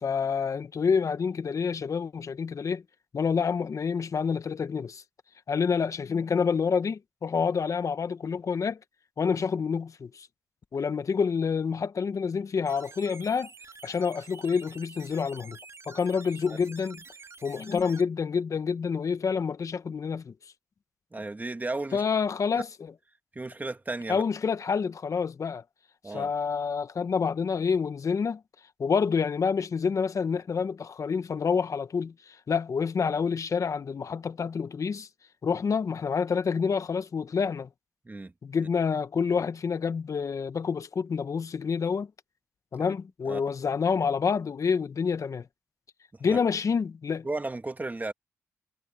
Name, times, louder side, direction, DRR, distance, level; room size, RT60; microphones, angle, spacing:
voice 1, 0.0-2.8 3.1-5.0 5.5-8.8 9.2-10.3 10.7-13.5 13.8-15.6 15.9-17.0 17.4-20.3 21.9-22.7 24.1-25.6 26.1-28.4 28.8-35.1 35.4-37.7 38.4-42.1 42.7-45.5 46.2-47.3, left 6 dB, 60° left, 1.3 m, -28 dB
sound 1, 12.7-18.0, right 4 dB, 45° right, 2.9 m, -48 dB
voice 2, 21.1-22.0 23.3-24.2 26.0-26.3 38.0-38.3 42.8-42.9 43.2-43.4 46.1-46.4 47.2-48.1, right 2 dB, 25° right, 2.0 m, -34 dB
supercardioid pair, 45°, 6 cm